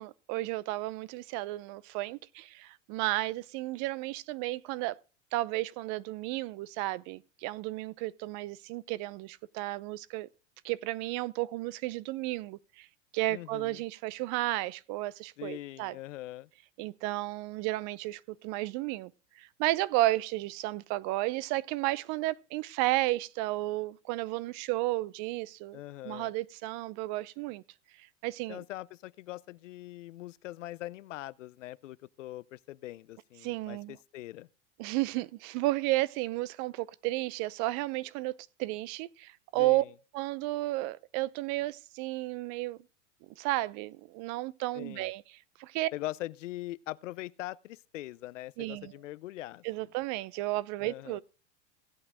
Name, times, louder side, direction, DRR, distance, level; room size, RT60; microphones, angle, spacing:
voice 1, 0.0-5.0 5.3-10.3 10.6-12.9 13.1-15.9 16.8-19.1 19.4-25.8 26.0-27.6 28.2-28.6 33.4-34.0 34.8-38.3 38.6-39.8 40.1-42.8 43.4-45.2 45.6-45.9 48.6-48.9 49.6-51.2, right 18 dB, 50° right, 0.7 m, -33 dB
voice 2, 13.3-13.8 15.4-16.5 25.7-26.3 28.5-34.5 39.5-39.9 44.7-45.1 45.9-49.6 50.8-51.2, left 16 dB, 80° left, 0.6 m, -42 dB
16.5 x 8.7 x 3.6 m
hypercardioid pair, 100°, 37 cm